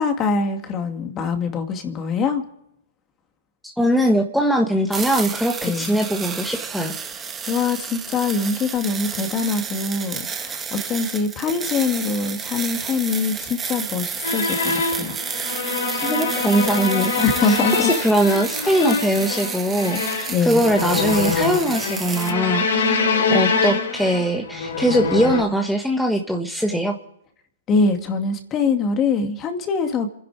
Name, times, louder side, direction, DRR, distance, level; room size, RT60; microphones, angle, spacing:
voice 1, 0.0-2.4 5.6-5.9 7.5-15.2 17.2-17.9 18.6-18.7 20.3-20.6 27.7-30.1, left 4 dB, 25° left, 6 dB, 2.3 m, -23 dB
voice 2, 3.6-6.9 15.9-17.6 18.0-27.0, right 1 dB, ahead, 1 dB, 1.5 m, -21 dB
sound 1, 4.9-22.3, right 6 dB, 15° right, 1.3 m, -31 dB
sound 2, 14.2-25.4, left 4 dB, 75° left, 3.8 m, -24 dB
27.0 x 10.5 x 5.0 m, 0.75 s
hypercardioid pair, 140°, 0 cm